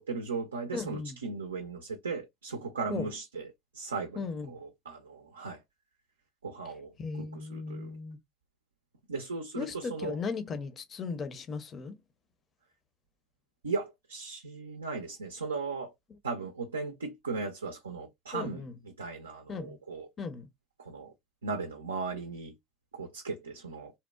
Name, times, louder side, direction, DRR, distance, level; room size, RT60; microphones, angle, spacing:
voice 1, 0.0-3.5 3.7-5.6 6.4-8.0 9.1-10.2 13.6-15.9 16.2-20.1 20.8-21.1 21.4-22.6 22.9-23.9, right 4 dB, 85° right, 0.4 m, -37 dB
voice 2, 0.7-1.2 2.9-3.1 4.2-4.6 7.0-8.2 9.6-12.0 18.3-18.8 19.5-19.8 20.2-20.5, left 4 dB, 35° left, 0.5 m, -37 dB
2.7 x 2.1 x 2.3 m
figure-of-eight pair, 65°, 0 cm